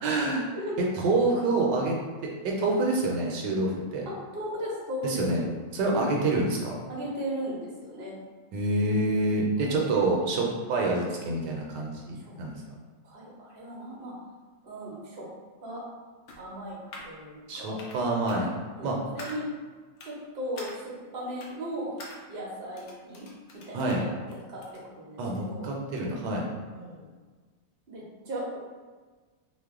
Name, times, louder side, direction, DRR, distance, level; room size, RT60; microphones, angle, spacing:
voice 1, 0.0-0.5 1.0-1.9 2.2-4.0 5.0-5.4 5.7-6.8 8.5-12.6 17.5-18.5 18.8-19.0 23.7-24.0 25.2-26.5, right 2 dB, 75° right, -1 dB, 1.1 m, -27 dB
voice 2, 4.1-5.4 5.9-6.1 6.9-8.1 9.6-9.8 12.2-12.4 13.0-14.1 14.6-15.3 15.6-15.8 16.4-16.8 17.0-17.8 18.7-19.5 20.0-21.9 22.3-23.2 23.7-25.7 26.7-27.1 27.9-28.6, equal, 55° right, -5 dB, 0.6 m, -37 dB
sound 1, 16.3-17.1 17.8-18.0 18.3-18.4 19.2-19.4 20.0-20.1 20.5-20.8 21.4-21.5 22.0-22.2 22.7-24.0 24.3-24.8, left 2 dB, 80° left, 0.6 m, -45 dB
3.0 x 2.0 x 3.5 m, 1.4 s
omnidirectional pair, 2.0 m